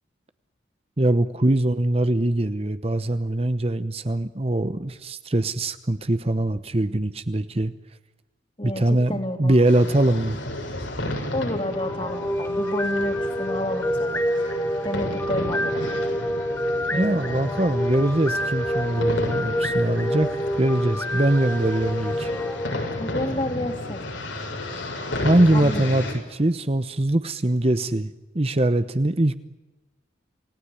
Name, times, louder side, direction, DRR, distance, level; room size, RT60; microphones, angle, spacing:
voice 1, 1.0-7.7 8.6-10.4 16.9-22.3 25.2-26.0 26.3-29.4, right 1 dB, 30° right, 11 dB, 0.9 m, -22 dB
voice 2, 8.6-9.5 11.3-14.5 14.8-15.7 16.9-17.5 23.0-24.0 25.5-25.9, left 1 dB, 30° left, 5 dB, 3.1 m, -30 dB
sound 1, 9.7-26.1, left 1 dB, 85° left, 7.2 m, -33 dB
sound 2, 11.5-23.7, equal, 10° left, 1.9 m, -27 dB
29.0 x 18.0 x 9.9 m, 1.1 s
head